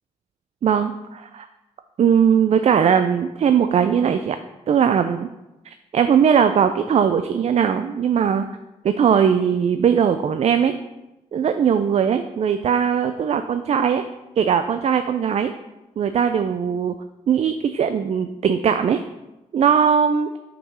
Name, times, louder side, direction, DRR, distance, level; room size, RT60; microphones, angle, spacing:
voice 1, 0.6-1.5 2.0-4.4 4.7-5.3 5.7-8.5 8.8-10.7 11.3-14.0 14.4-15.5 16.0-16.9 17.3-19.0 19.5-20.3, right 7 dB, 55° right, 9 dB, 0.4 m, -19 dB
5.5 x 3.8 x 5.4 m, 0.99 s
cardioid pair, 60°, 14 cm